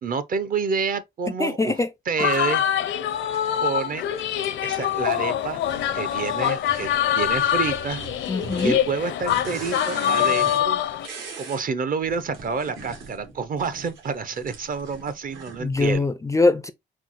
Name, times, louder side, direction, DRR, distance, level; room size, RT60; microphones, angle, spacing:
voice 1, 0.0-2.6 3.6-4.0 4.6-5.6 5.9-8.0 8.6-10.8 11.4-16.1, right 5 dB, 45° right, 0.6 m, -28 dB
voice 2, 1.4-1.9 8.3-8.8 15.6-16.7, left 3 dB, 15° left, 0.3 m, -22 dB
sound 1, 2.2-11.1, left 11 dB, 70° left, 0.6 m, -24 dB
sound 2, 3.3-3.5 4.2-5.1 5.6-11.6 12.0-15.9, right 4 dB, 80° right, 1.7 m, -40 dB
4.5 x 2.0 x 4.0 m
cardioid pair, 90°, 20 cm